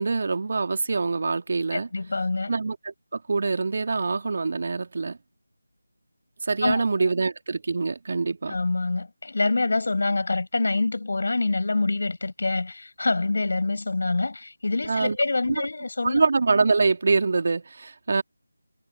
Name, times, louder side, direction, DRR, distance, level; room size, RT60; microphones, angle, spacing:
voice 1, 0.0-1.9 2.5-5.2 6.4-8.6 14.8-15.2 15.5-15.6 16.0-18.2, right 4 dB, 45° right, 2.5 m, -25 dB
voice 2, 1.7-2.5 6.6-7.1 8.5-16.2, left 3 dB, 60° left, 7.9 m, -26 dB
figure-of-eight pair, 165°, 0 cm